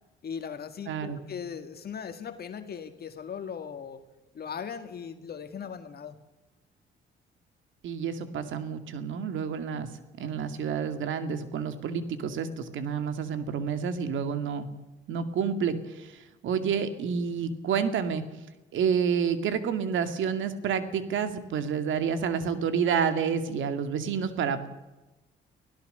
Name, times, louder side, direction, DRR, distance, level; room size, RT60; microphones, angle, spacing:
voice 1, 0.2-4.0 4.3-6.1, left 7 dB, 50° left, 8 dB, 1.9 m, -38 dB
voice 2, 0.9-1.2 7.8-9.9 10.2-14.7 15.1-18.2 18.7-24.7, right 7 dB, 80° right, 10 dB, 2.4 m, -29 dB
24.5 x 16.5 x 6.8 m, 1.1 s
cardioid pair, 90°, 20 cm